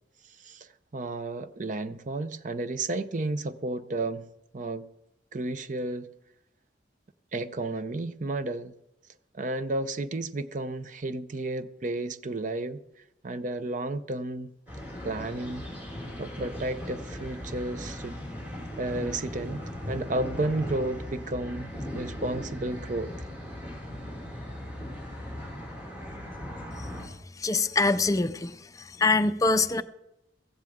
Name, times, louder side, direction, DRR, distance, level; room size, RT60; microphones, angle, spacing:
voice 1, 0.4-4.3 4.5-4.9 5.3-6.1 7.3-8.7 9.3-12.8 13.2-14.5 15.0-15.6 16.2-18.2 18.8-23.1, right 2 dB, 45° right, 0.6 m, -32 dB
sound 1, 14.7-27.1, left 1 dB, 10° right, 5.5 m, -38 dB
voice 2, 27.4-28.5 29.0-29.8, left 3 dB, 20° left, 0.4 m, -23 dB
15.5 x 15.5 x 3.6 m
head